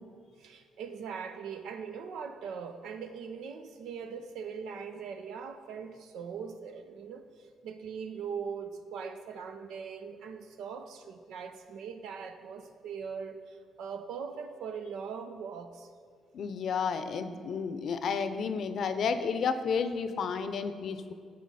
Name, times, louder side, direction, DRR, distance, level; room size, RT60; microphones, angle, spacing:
voice 1, 0.4-15.9, right 6 dB, 80° right, 0.7 m, -41 dB
voice 2, 16.3-21.1, left 6 dB, 60° left, 0.6 m, -31 dB
14.0 x 4.9 x 4.2 m
cardioid pair, 90°, 0 cm